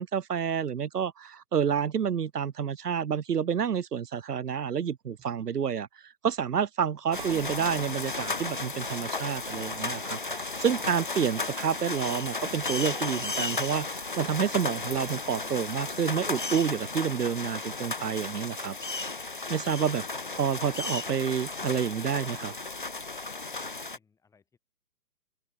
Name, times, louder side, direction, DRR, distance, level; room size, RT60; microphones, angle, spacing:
voice 1, 0.0-18.8 19.5-20.0 20.3-22.5, right 7 dB, 75° right, 0.7 m, -29 dB
sound 1, 5.2-5.4 5.7-5.8 7.2-11.2 12.4-12.6 14.9-17.0, right 13 dB, 10° right, 1.8 m, -52 dB
sound 2, 7.1-24.0, left 3 dB, 35° left, 0.4 m, -34 dB
voice 2, 23.9-24.6, left 5 dB, 5° left, 7.5 m, -67 dB
open air
figure-of-eight pair, 135°, 47 cm